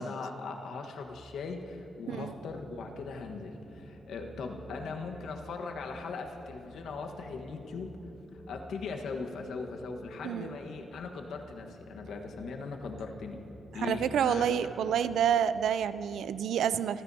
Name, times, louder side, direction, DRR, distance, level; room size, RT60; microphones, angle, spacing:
voice 1, 0.0-7.9 8.5-13.4 13.7-14.9, left 4 dB, 75° left, 3 dB, 1.3 m, -39 dB
sound 1, 0.9-16.2, right 1 dB, 15° right, 3.0 m, -51 dB
voice 2, 10.2-10.6 13.7-17.0, right 8 dB, 80° right, 14 dB, 0.4 m, -28 dB
26.0 x 15.0 x 2.8 m, 2.8 s
wide cardioid pair, 180°, 0 cm